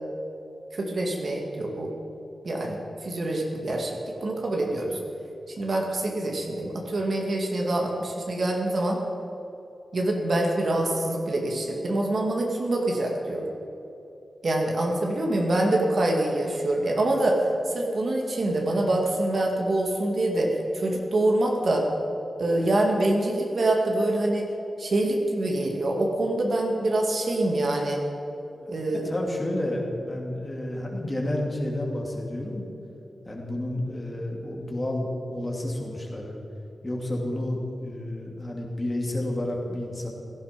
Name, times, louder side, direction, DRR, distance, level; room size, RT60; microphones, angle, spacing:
voice 1, 0.7-1.9 2.4-5.0 5.5-9.0 9.9-13.5 14.4-21.9 22.4-24.5 24.8-28.0 28.7-29.0, right 1 dB, 50° right, 0 dB, 2.3 m, -25 dB
voice 2, 28.6-32.7 33.3-36.4 36.8-40.1, left 1 dB, 20° left, -1 dB, 2.7 m, -30 dB
16.5 x 14.5 x 5.3 m, 3.0 s
wide cardioid pair, 135°, 0 cm